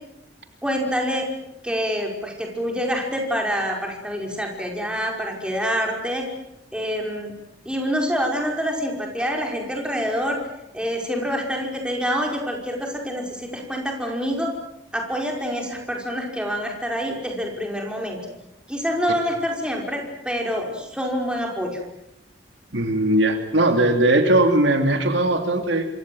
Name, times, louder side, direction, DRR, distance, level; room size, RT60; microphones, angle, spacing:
voice 1, 0.6-1.3 1.6-6.3 6.7-7.3 7.7-10.4 10.7-14.5 14.9-18.2 18.7-21.8, equal, 5° right, 1 dB, 5.4 m, -26 dB
voice 2, 22.7-25.9, right 1 dB, 65° right, 5 dB, 2.9 m, -19 dB
27.5 x 24.5 x 7.9 m, 0.87 s
head